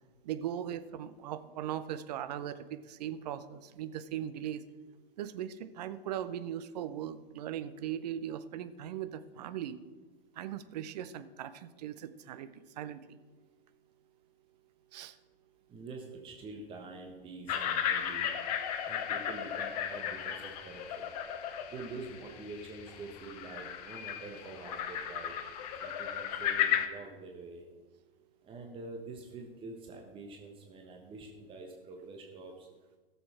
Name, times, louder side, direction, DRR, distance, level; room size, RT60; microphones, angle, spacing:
voice 1, 0.2-4.6 5.2-9.8 10.3-13.2 14.9-15.2, right 10 dB, 45° right, 12 dB, 0.7 m, -39 dB
voice 2, 15.7-18.3 18.8-21.1 21.7-25.4 25.8-27.6 28.4-32.7, right 3 dB, 15° right, 1 dB, 1.2 m, -46 dB
sound 1, 17.5-26.9, left 9 dB, 40° left, 0.9 m, -35 dB
16.0 x 7.0 x 4.4 m, 1.3 s
figure-of-eight pair, 100°, 30 cm